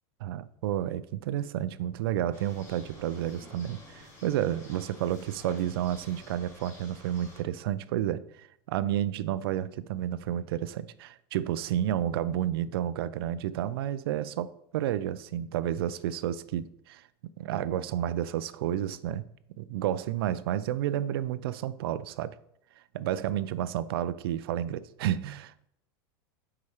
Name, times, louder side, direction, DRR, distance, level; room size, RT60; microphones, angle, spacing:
voice 1, 0.2-17.0 17.4-19.2 19.6-22.4 22.9-25.5, right 11 dB, 85° right, 0.4 m, -31 dB
sound 1, 2.3-7.4, left 1 dB, 25° left, 1.9 m, -51 dB
4.8 x 4.2 x 4.8 m
supercardioid pair, 170°, 12 cm